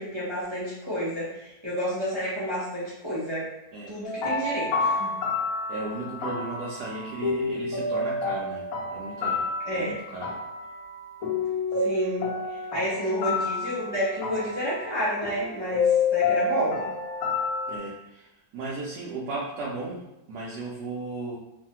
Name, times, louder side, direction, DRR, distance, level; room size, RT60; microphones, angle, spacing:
voice 1, 0.0-3.5 3.9-5.1 9.7-10.0 11.8-16.8, equal, 40° right, -9 dB, 0.4 m, -30 dB
sound 1, 4.0-17.8, left 4 dB, 70° left, 1.0 m, -29 dB
voice 2, 5.7-10.3 17.7-18.3 18.5-20.0 20.3-21.4, right 3 dB, 80° right, -3 dB, 1.1 m, -35 dB
3.1 x 2.1 x 2.8 m, 0.90 s
omnidirectional pair, 1.7 m